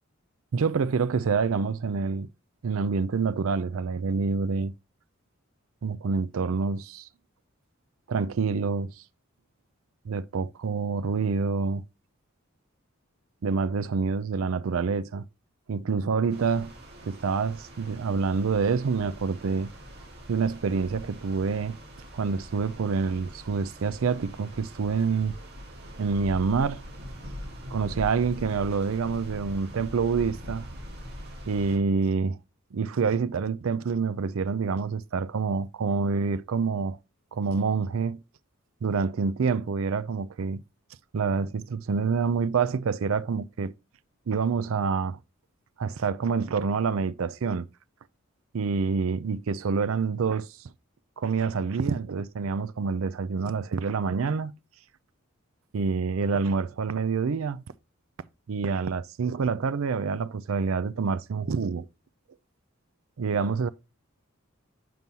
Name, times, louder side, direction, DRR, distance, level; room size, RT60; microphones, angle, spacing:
voice 1, 0.5-2.3 2.6-4.7 5.8-7.1 8.1-8.9 10.1-11.8 13.4-15.3 15.7-16.7 17.0-19.7 20.3-21.8 22.1-25.3 26.0-26.8 27.7-30.7 31.5-32.4 32.7-37.0 37.3-38.2 38.8-40.6 41.1-43.7 44.3-45.2 45.8-47.7 48.5-50.5 51.2-54.5 55.7-57.6 58.5-61.8 63.2-63.7, right 5 dB, 75° right, 0.4 m, -27 dB
sound 1, 16.3-31.8, equal, 50° right, 2.1 m, -42 dB
7.6 x 5.4 x 2.8 m
head